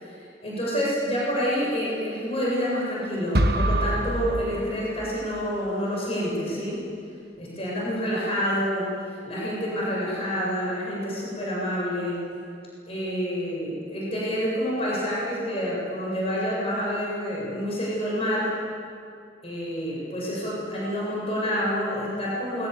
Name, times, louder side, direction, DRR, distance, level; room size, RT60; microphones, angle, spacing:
voice 1, 0.4-6.8 7.4-8.9 9.2-12.2 12.9-18.5 19.4-22.7, equal, 35° left, -5 dB, 7.8 m, -28 dB
sound 1, 3.3-5.4, right 1 dB, 60° right, 1.9 m, -25 dB
28.0 x 21.5 x 8.3 m, 2.4 s
head